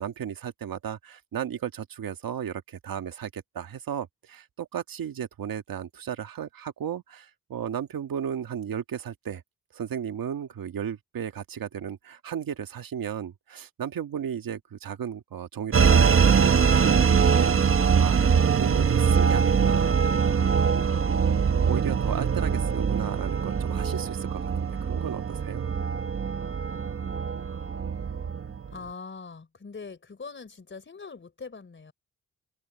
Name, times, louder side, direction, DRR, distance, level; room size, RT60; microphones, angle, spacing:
voice 1, 0.0-9.4 9.7-20.0 20.4-20.8 21.1-21.2 21.6-24.5 24.8-25.7, right 8 dB, 70° right, 1.7 m, -35 dB
sound 1, 15.7-28.7, right 6 dB, 35° right, 0.9 m, -23 dB
voice 2, 28.7-31.9, left 4 dB, 35° left, 4.4 m, -42 dB
open air
wide cardioid pair, 120°, 36 cm